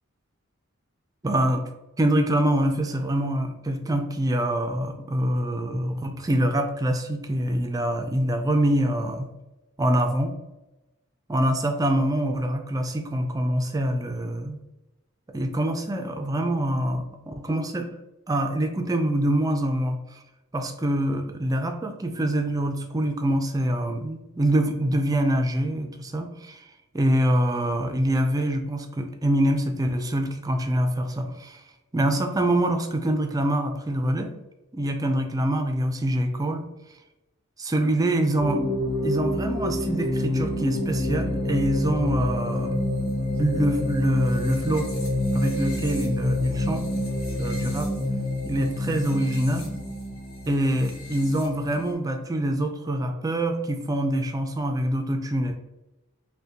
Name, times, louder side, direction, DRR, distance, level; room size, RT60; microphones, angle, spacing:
voice 1, 1.2-1.6 2.0-9.3 9.8-10.4 11.3-14.6 15.3-17.9 18.3-20.2 20.5-26.7 26.9-31.6 31.9-34.3 34.7-36.7 37.7-38.6 39.0-42.8 43.4-44.9 45.3-46.9 47.4-47.9 48.4-49.7 50.5-55.6, right 1 dB, 15° right, 5 dB, 0.4 m, -25 dB
sound 1, 38.4-51.9, left 1 dB, 80° left, 1.3 m, -28 dB
5.5 x 2.2 x 2.8 m, 0.99 s
head